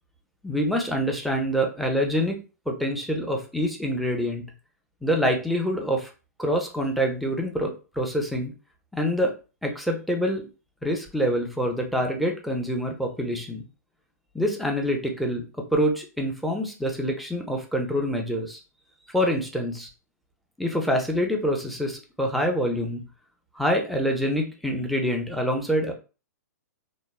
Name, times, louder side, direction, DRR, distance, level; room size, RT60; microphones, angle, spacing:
voice 1, 0.4-2.4 2.7-4.5 5.0-6.1 6.4-8.5 8.9-9.3 9.6-10.5 10.8-13.6 14.3-15.5 15.7-18.6 19.1-19.9 20.6-23.0 23.5-25.9, equal, ahead, 2 dB, 0.4 m, -26 dB
2.9 x 2.0 x 2.2 m, 0.33 s
hypercardioid pair, 120°, 9 cm